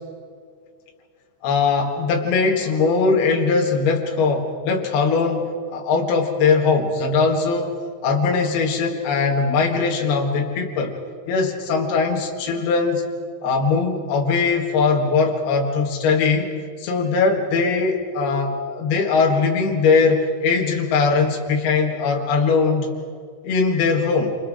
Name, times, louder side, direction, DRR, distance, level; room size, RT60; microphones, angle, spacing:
voice 1, 1.4-7.7 8.0-11.0 11.3-13.0 13.4-16.5 16.8-22.9 23.4-24.4, left 4 dB, 70° left, 0 dB, 3.7 m, -20 dB
28.5 x 28.0 x 5.0 m, 2.1 s
omnidirectional pair, 4.7 m